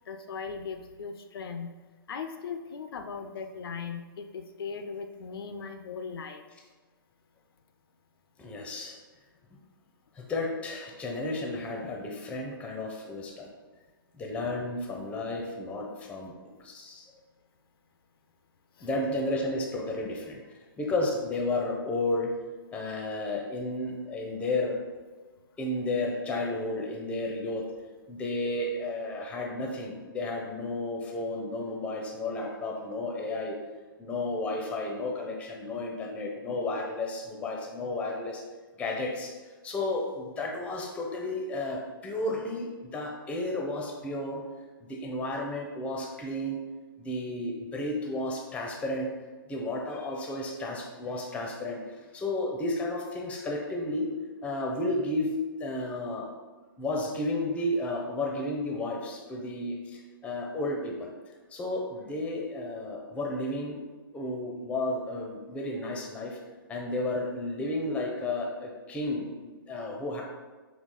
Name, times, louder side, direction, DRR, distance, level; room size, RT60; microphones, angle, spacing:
voice 1, 0.1-1.7 2.1-6.4 18.8-18.9, left 5 dB, 75° left, 7 dB, 0.4 m, -38 dB
voice 2, 8.4-9.0 10.1-13.5 14.1-16.3 16.6-17.1 18.8-22.3 22.7-24.8 25.6-27.7 28.1-33.6 34.0-38.4 38.7-39.3 39.6-44.4 44.8-46.6 47.0-49.1 49.5-51.8 52.1-54.1 54.4-55.3 55.6-56.3 56.8-63.8 64.1-66.4 66.7-70.2, left 2 dB, 10° left, 1 dB, 0.6 m, -32 dB
4.1 x 2.8 x 3.8 m, 1.3 s
hypercardioid pair, 140°, 12 cm